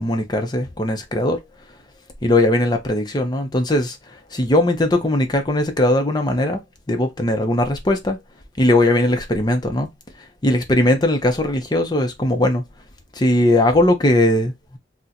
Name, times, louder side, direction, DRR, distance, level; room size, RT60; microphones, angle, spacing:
voice 1, 0.0-1.4 2.2-4.0 4.3-6.6 6.9-8.2 8.6-9.9 10.4-12.6 13.2-14.8, left 1 dB, 25° left, 0.6 m, -19 dB
4.1 x 2.1 x 2.5 m
head